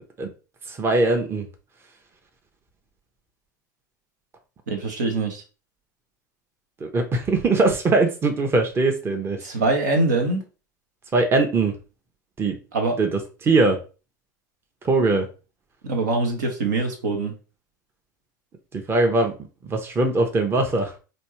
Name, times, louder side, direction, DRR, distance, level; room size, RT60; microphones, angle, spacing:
voice 1, 0.7-1.5 6.8-9.4 11.1-11.8 12.4-12.6 13.0-13.8 14.8-15.3 18.7-19.3 19.7-20.9, right 3 dB, 25° right, 4 dB, 0.9 m, -21 dB
voice 2, 4.7-5.4 9.4-10.4 12.7-13.0 15.8-17.4, right 3 dB, 70° right, 3 dB, 1.1 m, -23 dB
4.4 x 2.7 x 3.1 m, 0.33 s
figure-of-eight pair, 75°, 10 cm